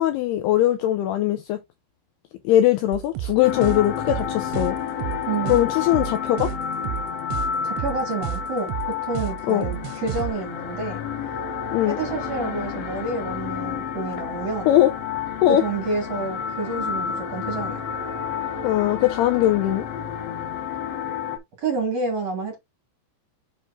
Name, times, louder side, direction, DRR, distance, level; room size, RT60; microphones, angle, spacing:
voice 1, 0.0-1.6 2.4-4.8 5.5-6.5 9.5-9.7 11.7-12.0 14.7-14.9 15.4-15.6 18.6-19.9, left 13 dB, 80° left, 2.4 m, -20 dB
nf-sir kick full, 2.9-10.3, right 15 dB, 85° right, 2.8 m, -31 dB
sound 1, 3.4-21.4, left 7 dB, 60° left, 2.9 m, -30 dB
voice 2, 5.3-5.6 7.6-8.7 9.0-11.0 11.9-14.7 15.5-17.8 21.6-22.6, right 3 dB, 45° right, 2.7 m, -29 dB
7.8 x 6.4 x 2.6 m
omnidirectional pair, 5.3 m